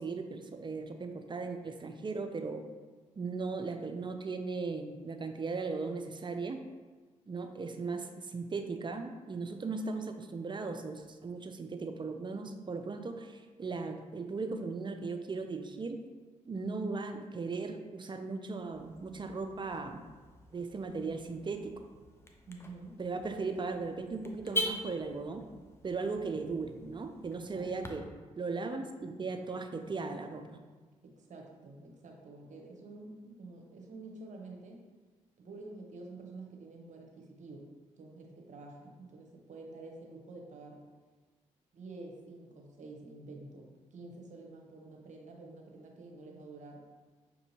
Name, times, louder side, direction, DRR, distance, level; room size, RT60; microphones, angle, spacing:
voice 1, 0.0-2.6 3.2-6.6 7.3-16.0 16.5-20.0 20.5-21.7 23.0-25.4 25.8-28.1 28.4-30.5, right 4 dB, 35° right, 6 dB, 0.5 m, -37 dB
Car / Alarm, 18.7-27.9, left 1 dB, 15° left, 0.6 m, -43 dB
voice 2, 22.5-23.0 27.5-27.9 31.0-34.8 35.4-40.8 41.7-46.8, right 2 dB, 60° right, 0 dB, 0.9 m, -49 dB
5.9 x 2.7 x 2.8 m, 1.4 s
supercardioid pair, 50°, 14 cm